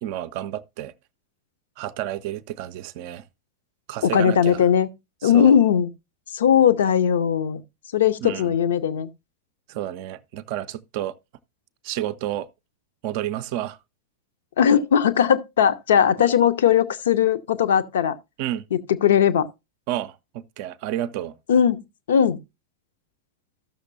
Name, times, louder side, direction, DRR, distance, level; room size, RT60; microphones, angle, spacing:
voice 1, 0.0-0.9 1.8-3.2 3.9-4.6 5.2-5.6 8.2-8.5 9.7-11.1 11.8-12.5 13.0-13.8 16.2-16.4 18.4-18.7 19.9-21.3, right 12 dB, 45° right, 0.4 m, -30 dB
voice 2, 4.0-4.9 5.2-5.9 6.3-7.6 7.9-9.1 14.6-18.2 18.7-19.5 21.5-21.8 22.1-22.4, left 8 dB, 60° left, 0.6 m, -19 dB
14.5 x 6.5 x 2.5 m
figure-of-eight pair, 90°, 0 cm